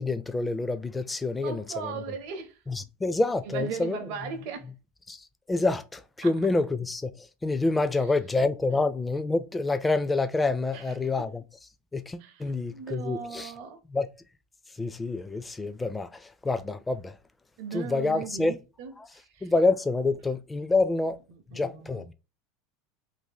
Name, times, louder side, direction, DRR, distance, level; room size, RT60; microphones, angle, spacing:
voice 1, 0.0-2.2 2.7-4.3 5.1-11.4 11.9-13.5 13.9-14.1 14.7-17.2 17.7-18.6 19.0-21.2 21.5-22.1, left 3 dB, 15° left, 0.4 m, -28 dB
voice 2, 1.4-2.6 3.5-4.7 6.2-6.3 10.7-11.1 12.2-13.8 17.6-19.5 21.5-22.0, right 6 dB, 60° right, 0.6 m, -38 dB
2.7 x 2.7 x 3.8 m
hypercardioid pair, 85°, 0 cm